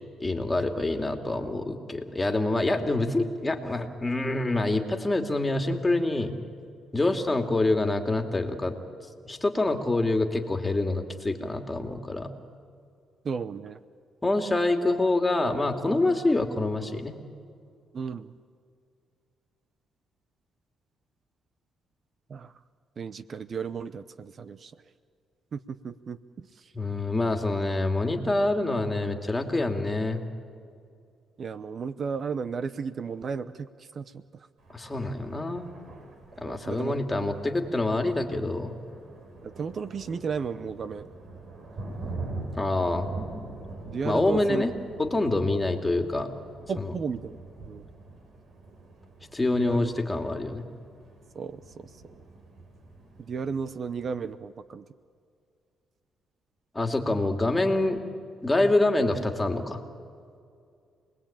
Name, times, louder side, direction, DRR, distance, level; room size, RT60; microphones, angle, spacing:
voice 1, 0.2-6.3 6.9-8.8 9.3-12.3 14.2-17.1 26.7-30.2 34.7-35.7 36.4-38.7 42.5-43.1 44.0-44.7 45.0-46.3 46.8-46.9 49.3-50.6 56.7-58.0 58.4-59.8, left 2 dB, 15° left, 4 dB, 2.7 m, -26 dB
voice 2, 13.2-13.8 17.9-18.3 22.3-22.5 23.0-24.7 25.5-26.2 31.4-34.2 36.4-36.9 39.6-41.1 43.9-44.6 46.7-47.4 47.7-47.8 49.5-49.9 51.3-51.9 53.3-54.8, right 6 dB, 50° right, 14 dB, 0.8 m, -34 dB
Thunder, 34.6-54.3, right 2 dB, 65° right, 4.1 m, -44 dB
28.0 x 20.5 x 8.8 m, 2.3 s
cardioid pair, 90°, 0 cm